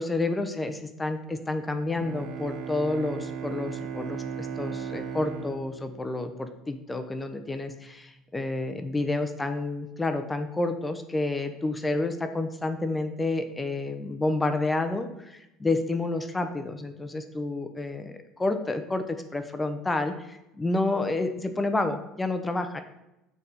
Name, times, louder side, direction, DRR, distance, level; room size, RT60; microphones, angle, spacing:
voice 1, 0.0-22.8, left 2 dB, 15° left, 8 dB, 0.6 m, -29 dB
Bowed string instrument, 1.9-6.9, right 7 dB, 55° right, 0.7 m, -37 dB
6.6 x 3.5 x 4.1 m, 0.91 s
supercardioid pair, 100°, 0 cm